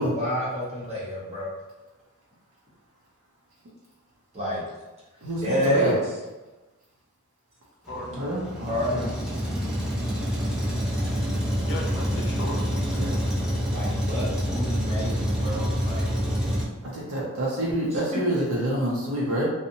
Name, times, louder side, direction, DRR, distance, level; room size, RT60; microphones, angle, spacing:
voice 1, 0.0-1.5 4.3-4.6 5.3-6.0 8.7-9.0 13.7-16.1 18.1-18.2, equal, 30° right, -7 dB, 0.8 m, -28 dB
voice 2, 5.2-5.9 8.1-9.1 13.0-13.1 16.9-19.5, right 1 dB, 70° right, -6 dB, 0.6 m, -27 dB
voice 3, 7.9-8.2 10.3-10.8 11.7-13.1, left 1 dB, 55° left, -1 dB, 0.6 m, -38 dB
Truck, 7.9-16.7, equal, 5° right, 0.4 m, -27 dB
2.7 x 2.0 x 2.6 m, 1.1 s
head